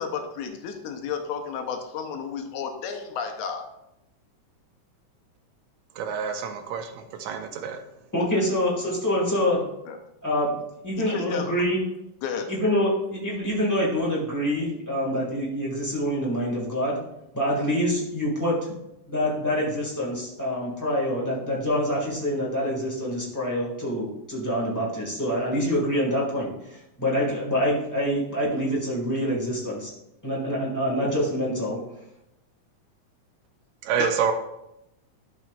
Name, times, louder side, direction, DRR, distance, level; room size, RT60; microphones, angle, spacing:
voice 1, 0.0-3.7 6.3-6.5 9.9-10.0 11.0-11.6 12.2-12.5 34.0-34.1, left 6 dB, 80° left, 5 dB, 2.1 m, -32 dB
voice 2, 6.0-7.8 33.8-34.3, right 7 dB, 80° right, 7 dB, 1.9 m, -27 dB
voice 3, 8.1-9.6 10.2-10.5 10.8-11.8 12.5-17.0 17.3-18.6 19.1-29.9 30.2-31.8, equal, 10° left, -5 dB, 1.2 m, -26 dB
11.5 x 6.0 x 2.4 m, 0.86 s
omnidirectional pair, 3.4 m